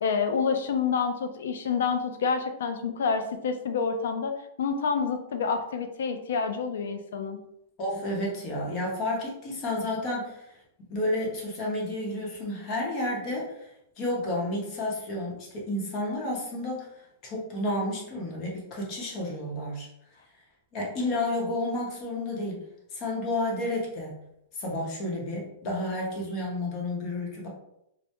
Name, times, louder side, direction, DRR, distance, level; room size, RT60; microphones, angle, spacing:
voice 1, 0.0-7.4, left 5 dB, 85° left, 6 dB, 0.3 m, -28 dB
voice 2, 7.8-10.6 10.9-13.7 14.0-16.9 17.2-19.9 20.7-22.6 22.9-24.2 24.6-27.5, left 1 dB, 30° left, -3 dB, 0.7 m, -31 dB
2.1 x 2.0 x 2.8 m, 0.80 s
supercardioid pair, 155°, 0 cm